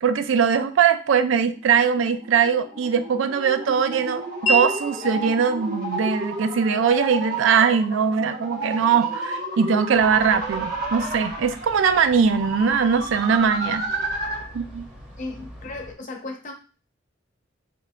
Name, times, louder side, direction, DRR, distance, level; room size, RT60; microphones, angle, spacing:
voice 1, 0.0-13.8 14.5-14.9, right 6 dB, 80° right, 10 dB, 0.4 m, -21 dB
sound 1, 1.9-14.5, right 2 dB, 45° right, 1.0 m, -31 dB
Wind chime, 4.5-10.5, right 1 dB, 90° left, 0.7 m, -33 dB
sound 2, 9.9-15.9, equal, 5° right, 0.9 m, -44 dB
voice 2, 15.2-16.5, left 2 dB, 40° left, 2 dB, 0.7 m, -35 dB
5.2 x 2.5 x 2.2 m, 0.36 s
head